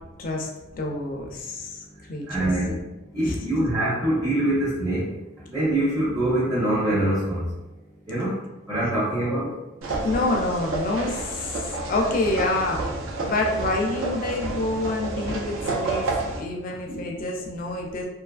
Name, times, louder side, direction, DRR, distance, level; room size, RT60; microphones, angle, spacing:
voice 1, 0.7-2.5 3.2-3.4 10.0-12.9 13.2-16.1 16.4-18.0, left 2 dB, 40° left, 0 dB, 0.3 m, -27 dB
voice 2, 2.3-2.8 3.1-5.1 5.5-7.5 8.1-8.4 8.7-9.5 16.7-17.0, right 1 dB, 15° right, -10 dB, 0.6 m, -24 dB
sound 1, 9.8-16.4, right 2 dB, 70° right, 0.5 m, -30 dB
2.6 x 2.4 x 2.3 m, 1.0 s
head